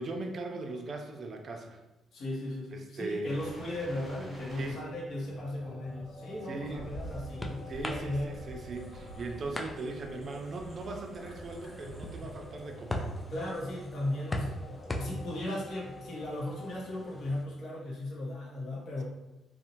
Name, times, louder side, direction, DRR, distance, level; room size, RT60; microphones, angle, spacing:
voice 1, 0.0-1.8 2.7-3.4 4.5-4.8 6.5-6.9 7.7-13.1, right 2 dB, 50° right, 4 dB, 0.4 m, -39 dB
voice 2, 2.1-8.3 13.3-19.0, left 1 dB, 65° left, -4 dB, 0.8 m, -36 dB
sound 1, 3.3-14.5 14.8-15.0, right 2 dB, ahead, 1.3 m, -48 dB
sound 2, 5.3-17.1, left 2 dB, 40° left, 1.0 m, -51 dB
sound 3, 6.4-17.4, left 1 dB, 20° left, 0.3 m, -42 dB
2.6 x 2.0 x 2.8 m, 1.0 s
cardioid pair, 90°, 0 cm